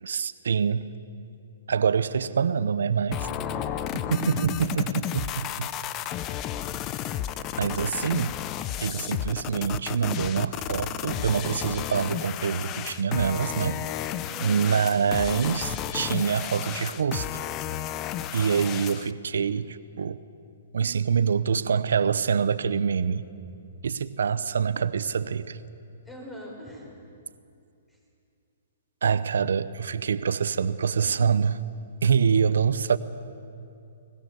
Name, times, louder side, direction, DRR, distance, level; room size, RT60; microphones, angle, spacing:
voice 1, 0.0-0.9 1.7-3.3 4.1-5.7 7.6-8.4 8.8-13.8 14.4-17.3 18.3-20.2 20.7-23.3 23.8-25.6 29.0-31.6 32.0-33.0, right 6 dB, 80° right, 15 dB, 0.8 m, -25 dB
sound 1, 3.1-19.1, left 11 dB, 30° left, 0.7 m, -33 dB
voice 2, 3.1-4.4 13.3-14.0 14.3-14.9 26.1-26.9, equal, 10° left, -1 dB, 5.3 m, -41 dB
24.0 x 20.0 x 7.0 m, 2.6 s
hypercardioid pair, 140°, 0 cm